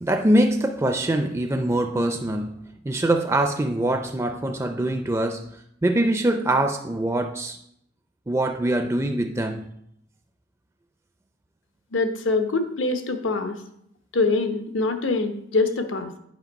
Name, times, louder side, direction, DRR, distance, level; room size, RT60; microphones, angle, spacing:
voice 1, 0.0-5.5 5.8-7.6 8.3-9.6, right 1 dB, 15° right, 5 dB, 0.4 m, -23 dB
voice 2, 11.9-13.6 14.1-16.1, left 3 dB, 80° left, 7 dB, 0.9 m, -24 dB
8.3 x 5.3 x 5.2 m, 0.74 s
head